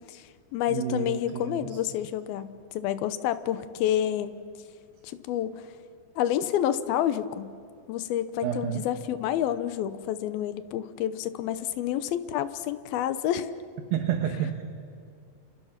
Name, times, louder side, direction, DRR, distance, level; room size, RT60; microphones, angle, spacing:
voice 1, 0.0-4.4 5.0-5.5 6.2-7.5 7.9-13.5, left 11 dB, 75° left, 12 dB, 2.4 m, -29 dB
voice 2, 0.7-1.8 8.4-8.9 13.9-14.6, right 9 dB, 65° right, 5 dB, 2.7 m, -30 dB
29.0 x 28.5 x 5.9 m, 2.4 s
omnidirectional pair, 5.1 m